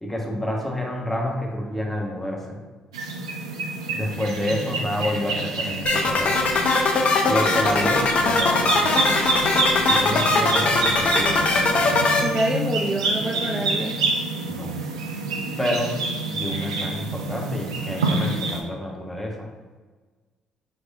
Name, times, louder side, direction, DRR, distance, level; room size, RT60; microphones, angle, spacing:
voice 1, 0.0-2.6 3.9-6.4 7.2-8.8 9.8-12.1 14.5-14.7 15.6-15.9 16.3-19.4, left 1 dB, 5° left, -1 dB, 1.1 m, -29 dB
sound 1, 2.9-18.6, right 2 dB, 85° right, 0.4 m, -27 dB
sound 2, 5.9-12.2, left 3 dB, 50° left, 0.6 m, -21 dB
voice 2, 12.2-14.0, right 2 dB, 25° right, -1 dB, 0.5 m, -26 dB
5.1 x 3.3 x 2.6 m, 1.4 s
hypercardioid pair, 45°, 3 cm